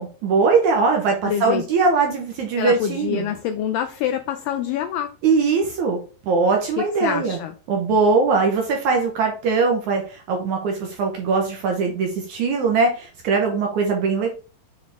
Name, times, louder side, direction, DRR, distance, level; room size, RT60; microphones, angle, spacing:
voice 1, 0.0-3.3 5.2-6.0 6.3-7.4 7.7-14.3, right 4 dB, 75° right, 1.8 m, -21 dB
voice 2, 1.2-1.6 2.6-5.1 6.8-7.5, left 9 dB, 90° left, 1.9 m, -26 dB
7.3 x 4.0 x 3.4 m
omnidirectional pair, 4.5 m